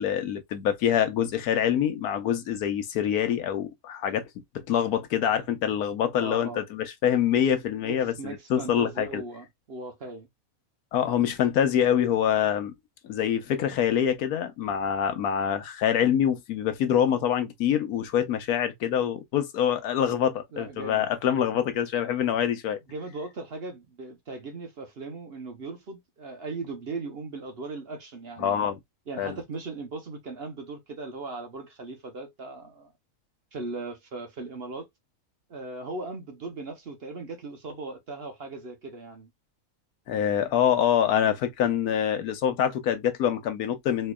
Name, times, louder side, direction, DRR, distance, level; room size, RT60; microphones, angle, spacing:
voice 1, 0.0-4.3 4.5-9.2 10.9-12.7 13.0-22.8 28.4-28.8 29.2-29.4 40.1-44.1, left 9 dB, 85° left, 1.2 m, -25 dB
voice 2, 6.2-6.6 7.8-10.3 20.5-21.1 22.9-28.6 29.1-32.9 33.5-34.9 35.5-39.3, right 3 dB, 50° right, 1.0 m, -38 dB
4.3 x 2.9 x 2.2 m
omnidirectional pair, 1.5 m